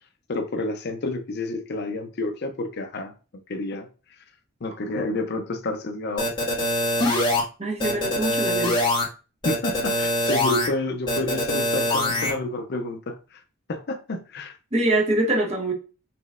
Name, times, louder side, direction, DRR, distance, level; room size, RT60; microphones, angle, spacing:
voice 1, 0.3-3.1 3.5-3.9 4.6-6.3 9.4-13.4 13.7-14.6, left 2 dB, 55° left, 0.6 m, -29 dB
sound 1, 6.2-7.4 7.8-9.0 9.4-10.7 11.1-12.3, left 1 dB, 25° left, 1.7 m, -23 dB
voice 2, 7.6-8.9 14.7-15.7, right 1 dB, 35° right, 1.1 m, -24 dB
5.9 x 3.1 x 2.4 m
head